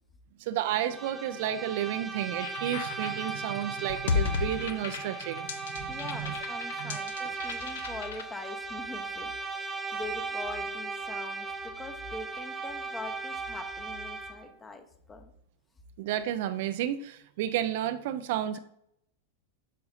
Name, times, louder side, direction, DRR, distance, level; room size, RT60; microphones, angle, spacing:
voice 1, 0.4-5.5 5.7-6.3 6.8-7.0 16.0-18.6, right 11 dB, 50° right, 11 dB, 0.4 m, -32 dB
Bowed string instrument, 0.6-14.5, right 4 dB, 15° right, 0.8 m, -37 dB
sound 1, 2.4-8.2, left 6 dB, 60° left, 0.7 m, -34 dB
voice 2, 5.9-9.3 9.9-15.3, left 3 dB, 15° left, 8 dB, 0.9 m, -43 dB
10.0 x 6.7 x 2.6 m, 0.74 s
figure-of-eight pair, 90°, 0 cm